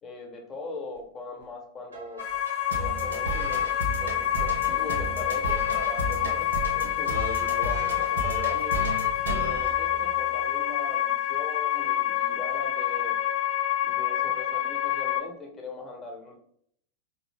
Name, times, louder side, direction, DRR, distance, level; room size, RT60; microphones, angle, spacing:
voice 1, 0.0-2.2 2.8-6.5 6.7-8.8 9.3-13.2 13.8-16.4, left 3 dB, 25° left, 1 dB, 1.0 m, -40 dB
sound 1, 1.9-10.5, right 1 dB, 70° right, 0.7 m, -34 dB
sound 2, 2.2-15.2, left 12 dB, 45° left, 0.5 m, -27 dB
4.0 x 2.7 x 3.4 m, 0.66 s
figure-of-eight pair, 90°, 0 cm